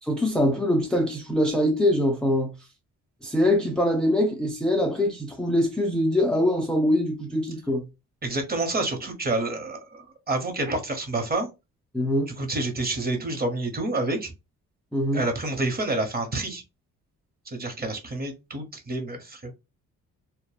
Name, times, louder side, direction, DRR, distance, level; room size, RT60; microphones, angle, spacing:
voice 1, 0.0-2.5 3.2-7.9 11.9-12.3 14.9-15.2, left 1 dB, 5° left, 0.4 m, -23 dB
voice 2, 8.2-11.5 12.4-14.3 15.1-16.6 17.5-19.5, right 2 dB, 30° right, 1.0 m, -28 dB
2.2 x 2.0 x 3.2 m
cardioid pair, 90°, 30 cm